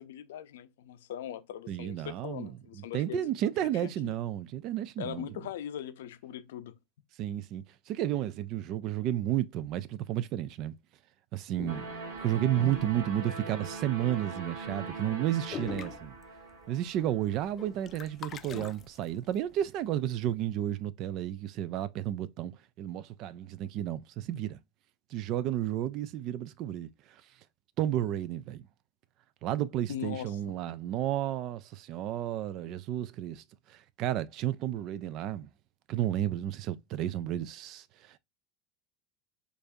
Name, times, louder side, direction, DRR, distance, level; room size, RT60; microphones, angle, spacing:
voice 1, 0.0-3.3 3.8-4.2 5.0-6.7 29.9-30.4, left 10 dB, 90° left, 0.5 m, -40 dB
voice 2, 1.7-5.3 7.2-10.7 11.3-11.9 12.2-16.1 16.7-22.5 22.8-24.6 25.1-26.9 27.8-28.6 29.4-33.4 33.7-35.5 35.9-38.2, right 12 dB, 55° right, 0.4 m, -32 dB
sound 1, 11.6-13.8 14.2-14.5 14.7-14.9 15.2-15.3 15.5-16.7 17.0-19.4, left 8 dB, 35° left, 0.4 m, -43 dB
sound 2, 11.7-17.7, right 4 dB, 80° right, 1.3 m, -41 dB
4.6 x 2.6 x 2.6 m
supercardioid pair, 120°, 0 cm